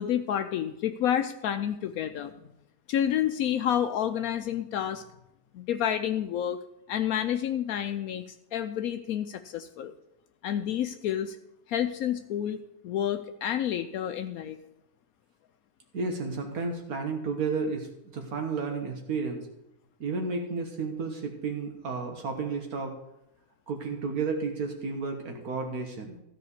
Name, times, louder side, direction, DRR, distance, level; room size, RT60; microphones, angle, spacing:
voice 1, 0.0-2.3 2.9-5.0 5.5-6.6 6.9-9.9 10.4-11.4 11.7-14.6, left 10 dB, 75° left, 8 dB, 1.0 m, -29 dB
voice 2, 15.9-17.9 18.1-19.4 20.0-22.9 23.7-26.1, right 4 dB, 80° right, 2 dB, 1.8 m, -32 dB
13.5 x 5.0 x 8.2 m, 0.84 s
omnidirectional pair, 1.5 m